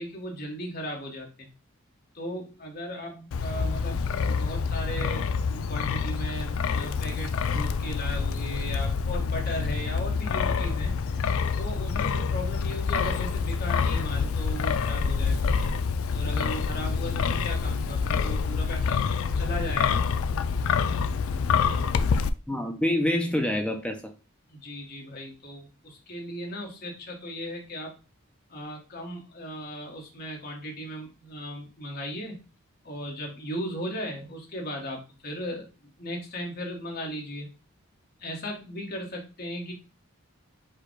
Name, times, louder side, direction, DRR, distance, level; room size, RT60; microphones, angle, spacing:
voice 1, 0.0-1.5 2.1-11.2 11.5-15.5 16.1-19.0 19.3-20.1 24.5-28.0 28.5-32.4 32.8-37.5 38.2-39.7, equal, 45° left, 1.3 m, -37 dB
Wind, 3.3-22.3, left 5 dB, 75° left, 0.4 m, -27 dB
voice 2, 22.5-24.0, left 1 dB, 5° left, 0.5 m, -26 dB
4.8 x 2.3 x 4.5 m
head